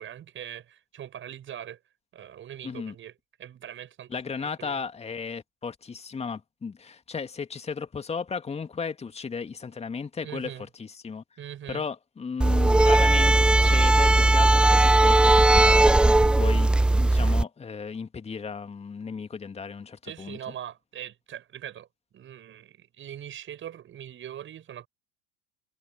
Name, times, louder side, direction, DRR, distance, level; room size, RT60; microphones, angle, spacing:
voice 1, 0.0-1.8 2.1-3.1 3.4-4.1 4.4-4.8 10.2-10.7 11.4-11.8 20.1-21.9 22.1-24.9, right 10 dB, 35° right, 7.4 m, -41 dB
voice 2, 2.6-2.9 4.1-11.2 11.7-20.4, left 5 dB, 15° left, 2.6 m, -35 dB
sound 1, 12.4-17.4, right 2 dB, 5° right, 0.4 m, -18 dB
figure-of-eight pair, 75°, 36 cm